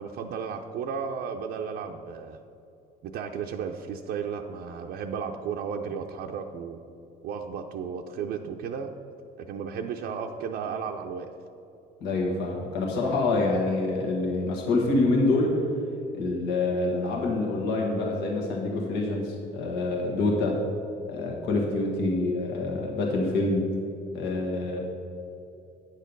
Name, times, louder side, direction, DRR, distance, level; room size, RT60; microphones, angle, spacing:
voice 1, 0.0-2.4 3.0-6.8 7.2-8.9 9.4-11.3, right 6 dB, 70° right, 2 dB, 0.5 m, -34 dB
voice 2, 12.0-15.5 16.1-20.6 21.1-23.7 24.1-24.8, left 2 dB, 80° left, -1 dB, 1.5 m, -26 dB
9.5 x 6.5 x 5.3 m, 2.8 s
cardioid pair, 110°, 17 cm